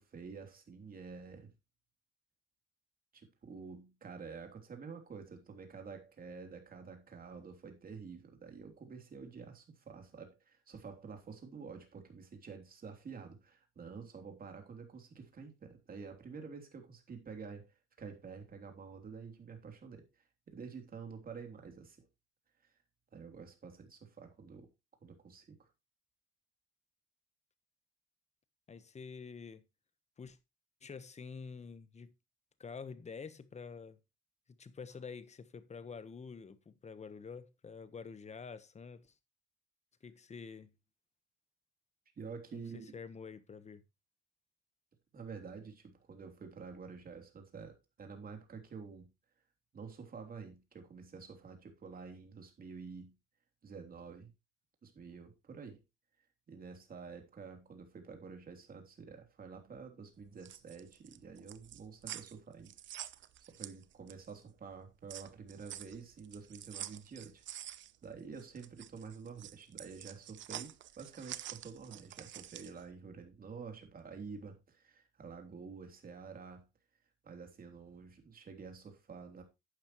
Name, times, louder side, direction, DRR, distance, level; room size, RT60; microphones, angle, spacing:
voice 1, 0.0-1.5 3.1-22.1 22.6-22.7 23.1-24.7 25.0-25.7 42.2-43.0 45.1-49.1 49.7-53.1 53.6-54.3 54.8-55.8 56.5-62.7 63.5-67.7 68.0-76.6 77.2-79.4, right 5 dB, 45° right, 3.3 m, -49 dB
voice 2, 28.7-29.6 30.2-30.4 30.8-32.1 32.6-34.0 34.5-39.1 40.0-40.7 42.5-43.8, left 5 dB, 35° left, 1.2 m, -48 dB
sound 1, 60.2-64.4 64.7-72.8, right 12 dB, 70° right, 0.8 m, -48 dB
11.5 x 8.9 x 3.1 m
cardioid pair, 90°, 20 cm